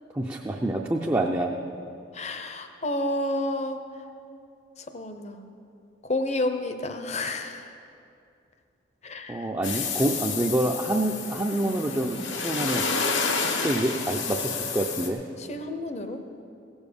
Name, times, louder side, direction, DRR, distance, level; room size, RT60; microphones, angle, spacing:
voice 1, 0.1-1.5 9.3-12.9 13.5-15.2, right 1 dB, 15° right, 0 dB, 0.5 m, -27 dB
voice 2, 2.1-3.8 4.9-5.4 6.1-7.7 9.0-9.5 15.4-16.2, left 1 dB, 35° left, 7 dB, 0.7 m, -30 dB
sound 1, 9.6-15.1, left 4 dB, 80° left, 1.2 m, -30 dB
16.5 x 7.1 x 6.8 m, 2.6 s
head